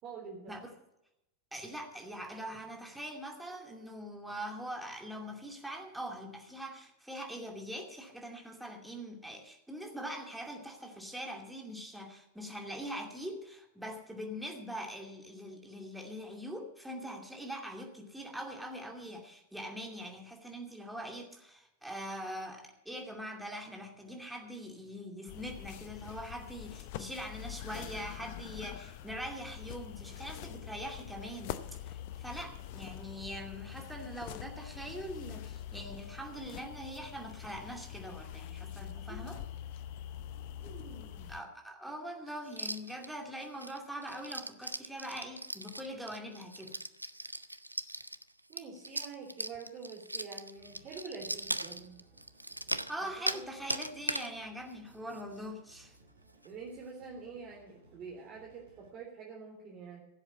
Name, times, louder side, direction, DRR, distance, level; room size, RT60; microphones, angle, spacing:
voice 1, 0.0-0.6 40.6-41.3 48.5-52.0 53.0-53.4 56.4-60.0, right 5 dB, 35° right, -3 dB, 3.4 m, -46 dB
voice 2, 1.5-39.4 41.3-46.7 52.9-55.9, equal, 5° right, 1 dB, 2.5 m, -43 dB
sound 1, 25.3-41.4, left 11 dB, 50° left, 0.7 m, -45 dB
sound 2, 42.5-43.1 43.4-53.4 53.7-54.3 54.7-54.8 55.1-55.4 55.7-55.8 56.3-56.5, right 1 dB, 85° right, 0.5 m, -39 dB
sound 3, 50.5-58.9, right 2 dB, 70° right, 4.4 m, -63 dB
15.5 x 7.8 x 7.1 m, 0.86 s
figure-of-eight pair, 90°, 0 cm